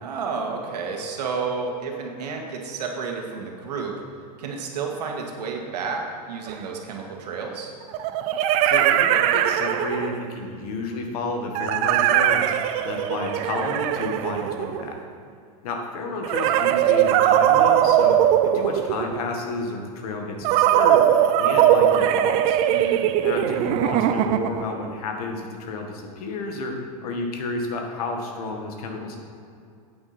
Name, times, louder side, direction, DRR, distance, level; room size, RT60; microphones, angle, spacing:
voice 1, 0.0-4.0 4.4-7.7 22.7-23.2, right 5 dB, 90° right, 1 dB, 1.9 m, -31 dB
sound 1, 6.5-6.6 7.9-10.3 11.5-15.0 16.2-19.3 20.4-24.7, right 11 dB, 30° right, 0.4 m, -20 dB
voice 2, 8.6-15.0 15.6-18.2 18.4-21.1 21.4-22.6 23.2-26.7 27.0-29.2, left 3 dB, 65° left, 3 dB, 1.7 m, -31 dB
9.3 x 8.7 x 4.4 m, 2.5 s
supercardioid pair, 155°, 20 cm